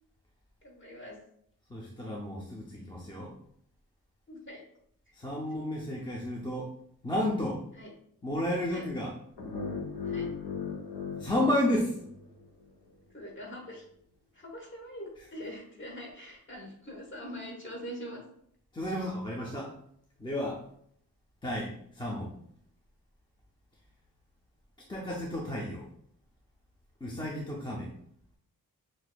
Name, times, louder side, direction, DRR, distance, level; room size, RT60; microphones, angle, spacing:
voice 1, 0.6-1.2 4.3-4.6 7.7-7.9 8.7-8.9 10.0-10.3 13.1-13.9 14.3-18.2, equal, 30° left, -1 dB, 1.2 m, -43 dB
voice 2, 1.7-3.3 5.1-6.7 7.0-7.6 8.2-9.1 11.2-12.0 18.7-19.7 20.2-20.6 21.4-22.3 24.9-25.9 27.0-27.9, left 1 dB, 10° left, -3 dB, 0.4 m, -32 dB
sound 1, 9.4-12.4, left 5 dB, 75° left, 1.0 m, -37 dB
6.0 x 2.5 x 2.2 m, 0.69 s
wide cardioid pair, 130°, 38 cm